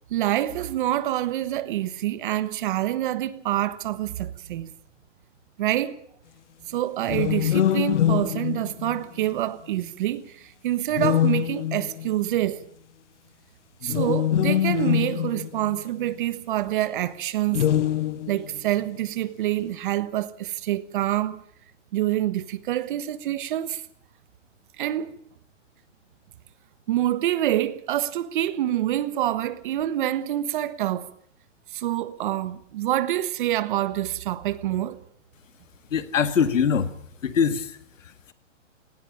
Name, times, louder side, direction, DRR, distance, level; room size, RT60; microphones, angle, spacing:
voice 1, 0.1-4.7 5.6-6.0 6.7-12.6 13.8-17.7 18.3-21.4 21.9-23.8 24.8-25.1 26.9-31.1 31.7-35.0, right 13 dB, 40° right, 1.3 m, -26 dB
sound 1, 7.0-9.3 10.9-12.1 13.8-16.1 17.5-18.6, left 11 dB, 65° left, 1.0 m, -24 dB
voice 2, 35.9-36.9 37.2-37.8, left 7 dB, 85° left, 2.0 m, -22 dB
19.0 x 17.5 x 8.7 m
hypercardioid pair, 160°, 38 cm